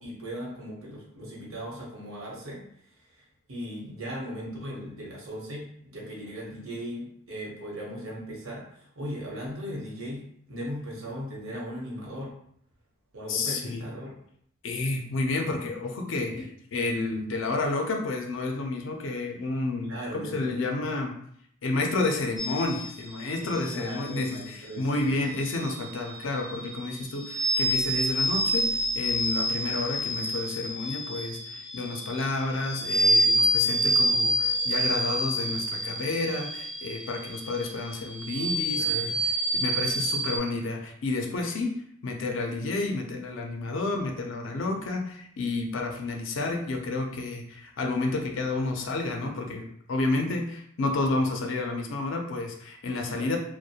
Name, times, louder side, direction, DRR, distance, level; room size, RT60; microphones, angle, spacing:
voice 1, 0.0-2.6 3.1-3.2 3.5-10.2 10.5-12.3 13.1-14.1 19.8-20.9 23.4-25.4 38.7-39.2 53.2-53.4, equal, 90° right, -4 dB, 0.9 m, -38 dB
voice 2, 13.3-13.9 14.6-21.2 21.6-41.8 42.0-53.4, left 2 dB, 65° left, 3 dB, 0.4 m, -30 dB
sound 1, 22.4-40.4, right 1 dB, ahead, 0.3 m, -28 dB
2.3 x 2.1 x 2.7 m, 0.68 s
head